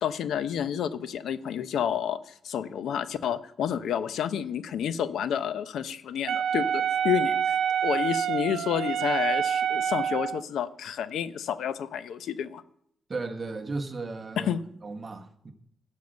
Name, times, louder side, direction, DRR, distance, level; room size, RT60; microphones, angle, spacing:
voice 1, 0.0-7.6 7.8-12.6 14.4-14.6, left 9 dB, 85° left, 13 dB, 0.6 m, -30 dB
Wind instrument woodwind instrument, 6.3-10.4, right 8 dB, 85° right, 0.5 m, -27 dB
voice 2, 13.1-14.5 14.8-15.5, right 3 dB, 30° right, 4 dB, 1.3 m, -35 dB
10.5 x 6.6 x 7.8 m, 0.70 s
cardioid pair, 110°, 0 cm